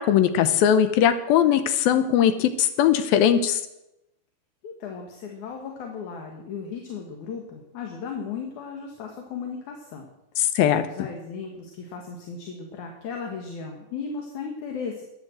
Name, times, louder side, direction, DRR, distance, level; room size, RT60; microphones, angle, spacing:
voice 1, 0.0-3.6 10.4-10.8, left 9 dB, 75° left, 11 dB, 2.5 m, -20 dB
voice 2, 4.6-10.1 10.8-15.0, left 5 dB, 60° left, 2 dB, 2.5 m, -36 dB
12.5 x 10.0 x 7.6 m, 0.88 s
omnidirectional pair, 4.5 m